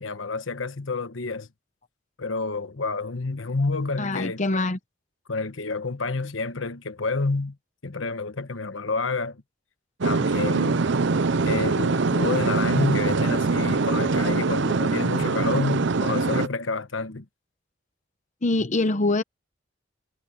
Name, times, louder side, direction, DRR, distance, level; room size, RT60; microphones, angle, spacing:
voice 1, 0.0-1.5 2.2-4.4 5.3-7.6 7.8-9.4 10.0-10.8 11.4-17.3, left 3 dB, 80° left, 1.2 m, -29 dB
voice 2, 4.0-4.8 18.4-19.2, left 2 dB, 40° left, 0.9 m, -24 dB
sound 1, 10.0-16.5, right 4 dB, 65° right, 0.7 m, -23 dB
head